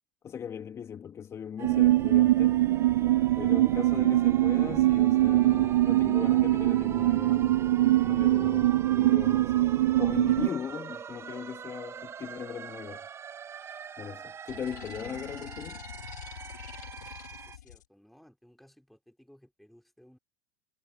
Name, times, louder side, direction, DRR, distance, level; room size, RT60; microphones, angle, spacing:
voice 1, 0.2-2.6 3.4-9.7 10.0-13.0 14.0-15.9, left 8 dB, 30° left, 1.8 m, -39 dB
sound 1, 1.6-17.6, right 7 dB, 30° right, 0.7 m, -42 dB
sound 2, 1.6-10.5, right 15 dB, 75° right, 0.4 m, -23 dB
sound 3, 14.5-17.8, left 11 dB, 85° left, 1.6 m, -45 dB
voice 2, 17.6-20.2, equal, ahead, 4.1 m, -58 dB
hypercardioid pair, 90°, 9 cm